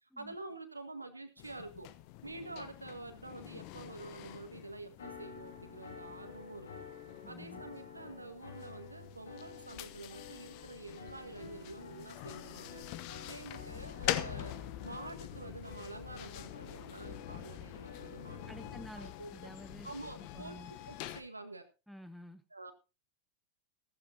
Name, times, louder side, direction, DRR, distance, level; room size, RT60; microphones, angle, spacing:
voice 1, 0.0-1.9 2.2-6.9 7.3-12.8 13.3-14.6 14.8-19.3 19.8-21.7 22.5-22.7, right 2 dB, 80° right, 8 dB, 1.6 m, -48 dB
sound 1, 1.4-21.2, left 14 dB, 45° left, 0.9 m, -45 dB
sound 2, 5.0-18.7, left 5 dB, 65° left, 3.1 m, -51 dB
voice 2, 7.2-7.6 18.5-19.9 20.2-20.7 21.9-22.4, equal, ahead, 11 dB, 1.3 m, -50 dB
15.0 x 15.0 x 2.8 m, 0.27 s
figure-of-eight pair, 90°, 0 cm